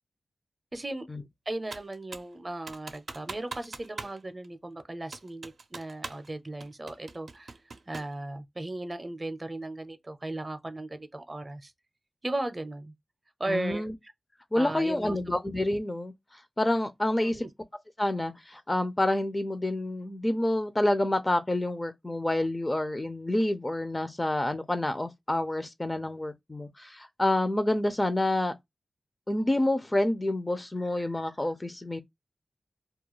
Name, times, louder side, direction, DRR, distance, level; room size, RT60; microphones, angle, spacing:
voice 1, 0.7-1.1 1.5-7.5 7.9-11.7 12.2-12.9 13.4-14.1 14.5-15.2 17.2-17.5, right 2 dB, 30° right, 0.5 m, -36 dB
Computer keyboard, 1.7-2.3 2.7-4.2 4.4-4.5 5.1-6.3 6.6-8.2, right 4 dB, 75° right, 0.5 m, -42 dB
voice 2, 13.5-13.9 14.5-16.1 16.6-17.4 18.0-28.5 29.3-32.0, left 1 dB, 25° left, 0.4 m, -28 dB
2.3 x 2.2 x 2.9 m
wide cardioid pair, 65°, 0 cm